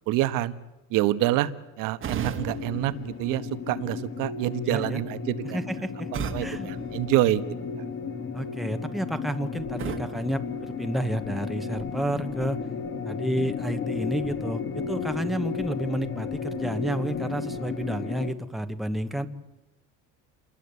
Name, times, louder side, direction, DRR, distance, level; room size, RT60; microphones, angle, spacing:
voice 1, 0.1-0.5 0.9-1.5 1.8-5.7 6.1-7.4 7.8-7.9, right 15 dB, 85° right, 13 dB, 1.4 m, -27 dB
sound 1, 2.0-4.0 6.1-7.8 9.8-11.4, right 7 dB, 40° right, 1.6 m, -38 dB
sound 2, 2.4-18.3, left 5 dB, 40° left, 1.9 m, -34 dB
voice 2, 4.7-5.0 5.5-6.7 8.3-12.6 13.0-19.3, right 1 dB, ahead, 7 dB, 1.1 m, -30 dB
28.5 x 20.5 x 8.3 m, 1.0 s
cardioid pair, 140°, 32 cm